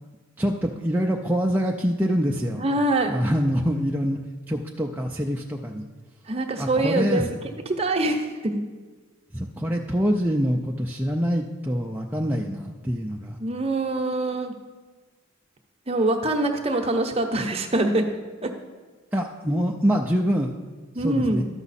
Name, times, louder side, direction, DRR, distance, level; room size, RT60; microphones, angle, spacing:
voice 1, 0.4-2.6 3.1-5.9 6.6-7.3 9.3-13.4 19.1-20.5 21.0-21.4, equal, 10° right, 0 dB, 0.4 m, -25 dB
voice 2, 2.6-3.1 6.3-7.3 7.7-8.6 13.4-14.5 15.9-18.1 18.4-18.5 19.5-19.6 20.9-21.4, right 2 dB, 30° right, 4 dB, 0.8 m, -24 dB
12.5 x 5.9 x 4.1 m, 1.4 s
head